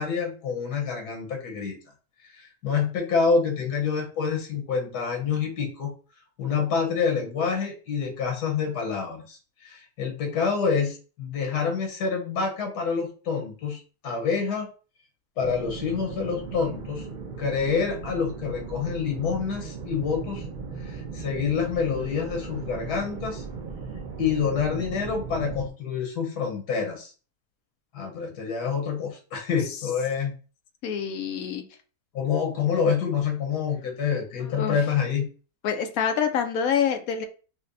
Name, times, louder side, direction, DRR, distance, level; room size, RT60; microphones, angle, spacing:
voice 1, 0.0-1.8 2.3-5.9 6.4-14.7 15.4-17.1 17.4-20.4 20.8-23.4 24.2-27.1 27.9-30.3 32.1-35.3, left 6 dB, 85° left, 1 dB, 1.6 m, -27 dB
sound 1, 15.4-25.7, right 4 dB, 75° right, 0.4 m, -37 dB
voice 2, 30.8-31.6 34.4-34.8 35.6-37.3, left 7 dB, 70° left, 6 dB, 1.0 m, -26 dB
5.7 x 2.2 x 2.6 m, 0.37 s
omnidirectional pair, 1.7 m